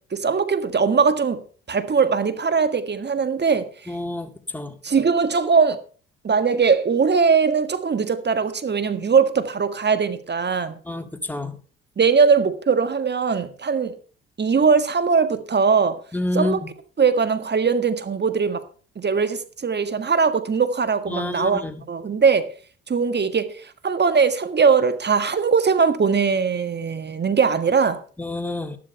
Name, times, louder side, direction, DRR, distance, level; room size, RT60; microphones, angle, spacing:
voice 1, 0.1-1.4 1.7-3.7 4.8-5.8 6.2-10.8 12.0-14.0 14.4-16.0 16.3-16.6 17.0-18.6 19.0-21.6 21.9-22.5 22.9-23.6 23.8-28.0, right 5 dB, 35° right, 1.7 m, -20 dB
voice 2, 3.9-4.8 10.9-11.6 16.1-16.6 21.1-21.8 28.2-28.8, left 2 dB, 5° left, 2.2 m, -28 dB
12.5 x 11.5 x 4.4 m
hypercardioid pair, 55°, 29 cm